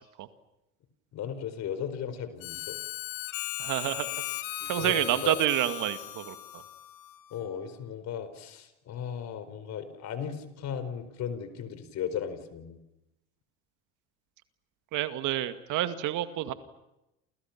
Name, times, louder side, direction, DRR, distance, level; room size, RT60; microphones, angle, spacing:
voice 1, 1.1-2.8 4.6-5.4 7.3-12.8, left 8 dB, 50° left, 11 dB, 4.5 m, -36 dB
Harmonica, 2.4-7.6, left 17 dB, 65° left, 1.9 m, -38 dB
voice 2, 3.6-4.2 4.7-6.6 14.9-16.5, right 13 dB, 55° right, 10 dB, 2.1 m, -29 dB
29.5 x 29.0 x 6.0 m, 0.90 s
hypercardioid pair, 80°, 35 cm